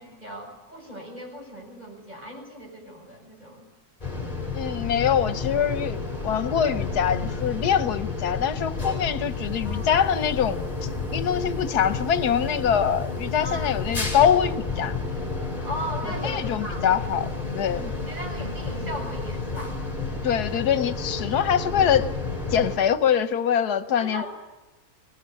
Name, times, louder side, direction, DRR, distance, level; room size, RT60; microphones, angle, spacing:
voice 1, 0.0-3.7 9.6-9.9 13.4-13.7 15.6-16.9 17.8-19.8 24.0-24.3, equal, 25° right, 0 dB, 7.6 m, -37 dB
sound 1, 4.0-22.8, left 3 dB, 20° left, 5.5 m, -31 dB
voice 2, 4.5-15.0 16.2-17.3 17.5-17.9 20.2-22.1 22.5-24.2, left 8 dB, 80° left, 13 dB, 1.5 m, -24 dB
22.5 x 19.5 x 8.2 m, 1.1 s
omnidirectional pair, 1.7 m